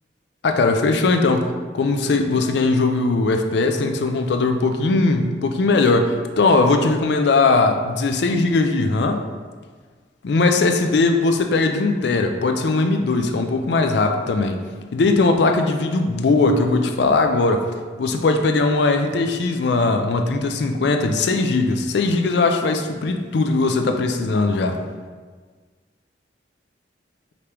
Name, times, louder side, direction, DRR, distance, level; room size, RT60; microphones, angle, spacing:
voice 1, 0.4-9.2 10.2-14.6 14.9-17.7 18.0-24.8, left 3 dB, 70° left, 5 dB, 0.4 m, -19 dB
5.1 x 3.3 x 2.9 m, 1.5 s
head